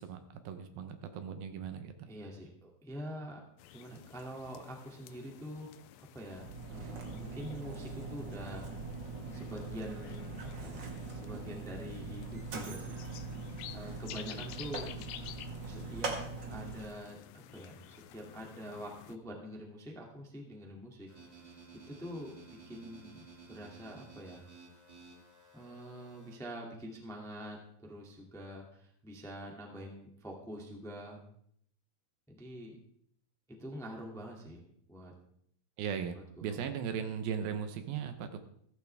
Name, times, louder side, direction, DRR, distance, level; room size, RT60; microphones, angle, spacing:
voice 1, 0.0-2.1 35.8-38.4, right 7 dB, 75° right, 8 dB, 2.5 m, -38 dB
voice 2, 2.0-3.4 3.7-5.7 6.0-8.7 9.3-10.8 11.1-12.9 13.7-15.3 15.6-16.2 16.5-21.1 21.9-24.4 25.5-31.2 32.3-32.8 33.5-34.6 34.9-35.1 36.1-36.2 36.6-36.7, equal, ahead, 0 dB, 1.0 m, -45 dB
sound 1, 3.6-19.2, left 12 dB, 80° left, 2.3 m, -52 dB
Mechanisms, 6.2-17.0, right 3 dB, 60° right, 1.1 m, -42 dB
sound 2, 21.1-26.4, right 4 dB, 20° right, 1.9 m, -55 dB
15.0 x 14.5 x 3.5 m, 0.67 s
omnidirectional pair, 4.7 m